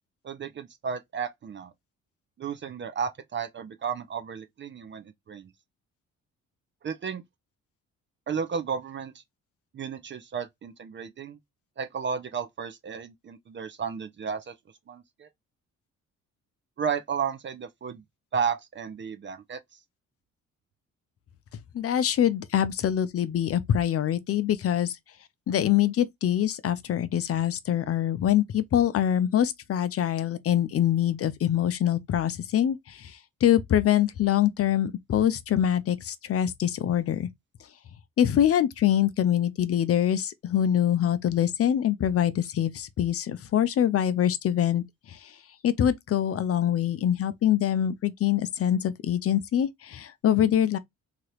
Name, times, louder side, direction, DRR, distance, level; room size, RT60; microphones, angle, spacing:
voice 1, 0.2-1.7 2.4-5.5 6.8-7.2 8.3-9.2 9.7-11.4 11.8-14.5 14.9-15.3 16.8-18.0 18.3-19.6, right 6 dB, 40° right, 0.5 m, -33 dB
voice 2, 21.7-25.0 25.5-37.3 38.2-45.4 45.6-50.8, left 10 dB, 50° left, 0.5 m, -24 dB
2.9 x 2.4 x 3.1 m
cardioid pair, 90°, 30 cm